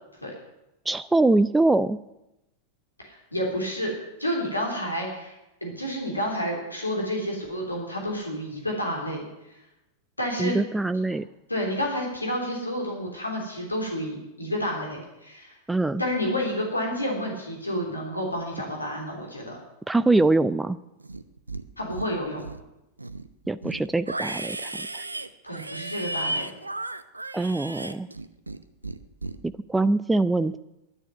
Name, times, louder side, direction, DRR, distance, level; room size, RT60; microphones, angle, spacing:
voice 1, 0.9-2.0 10.4-11.3 15.7-16.0 19.9-20.8 23.5-25.1 27.3-28.1 29.4-30.6, right 2 dB, 10° right, 14 dB, 0.4 m, -23 dB
voice 2, 3.0-3.9 4.2-5.3 5.6-9.2 9.5-9.6 10.2-10.6 11.5-15.5 16.0-19.6 21.8-22.4 25.5-26.5, equal, 85° left, -1 dB, 3.3 m, -30 dB
Livestock farm animals working animals, 21.0-21.6 21.9-22.6 23.0-28.6 28.8-29.4, right 2 dB, 80° right, 0.6 m, -34 dB
11.0 x 9.8 x 9.6 m, 0.91 s
figure-of-eight pair, 90°, 0 cm